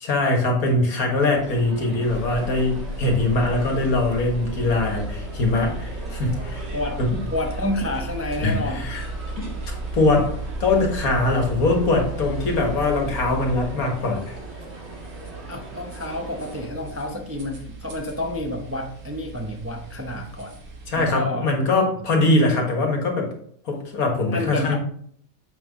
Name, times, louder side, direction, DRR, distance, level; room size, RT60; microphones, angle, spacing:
voice 1, 0.0-6.6 7.0-7.2 8.4-9.0 9.4-9.5 9.9-14.4 20.9-23.3 23.7-24.8, left 2 dB, 75° left, 1 dB, 2.0 m, -22 dB
sound 1, 1.1-16.7, right 2 dB, 45° right, 2.2 m, -40 dB
sound 2, 2.0-21.1, right 2 dB, 75° right, 1.9 m, -35 dB
voice 2, 7.3-8.9 15.5-20.5 21.0-21.7 24.2-24.8, left 1 dB, 15° right, 2 dB, 0.5 m, -29 dB
7.5 x 5.5 x 3.6 m, 0.62 s
omnidirectional pair, 1.6 m